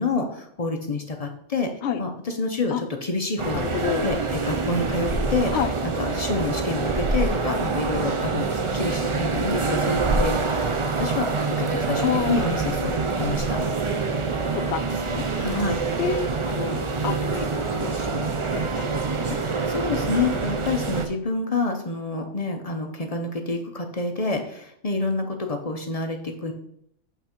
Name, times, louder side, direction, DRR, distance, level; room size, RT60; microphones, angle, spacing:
voice 1, 0.0-1.7 2.0-5.5 5.8-13.6 15.4-15.8 19.4-26.5, left 3 dB, 40° left, 4 dB, 0.7 m, -28 dB
sound 1, 3.4-21.1, right 4 dB, 35° right, 0.5 m, -26 dB
voice 2, 3.5-4.1 5.5-5.7 12.0-12.5 14.5-15.3 16.0-19.4, left 8 dB, 70° left, 8 dB, 0.9 m, -29 dB
7.9 x 3.6 x 4.4 m, 0.71 s
omnidirectional pair, 1.2 m